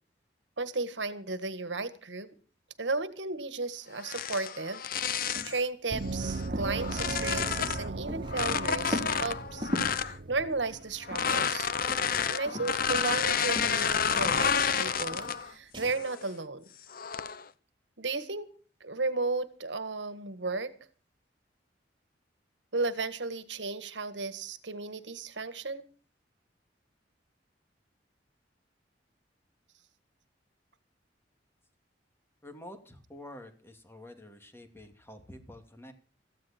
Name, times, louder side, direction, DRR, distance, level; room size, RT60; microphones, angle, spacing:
voice 1, 0.6-2.3 2.8-11.7 12.3-16.7 18.0-18.5 18.8-20.7 22.7-25.8, right 3 dB, 75° right, 13 dB, 1.7 m, -34 dB
sound 1, 4.0-5.6 6.2-7.9 8.3-10.1 11.0-15.5 15.9-16.2 16.9-17.4, left 7 dB, 55° left, 0.9 m, -30 dB
sound 2, 4.9-5.6 5.9-6.0 6.2-8.5 8.9-10.0 10.6-11.6 11.8-13.3 13.5-14.8 15.1-15.9, left 1 dB, 25° right, 3.6 m, -39 dB
Gong, 5.9-11.2, right 2 dB, 50° right, 0.8 m, -37 dB
voice 2, 32.4-35.9, left 1 dB, 15° left, 6 dB, 2.6 m, -48 dB
17.5 x 15.0 x 4.4 m, 0.39 s
head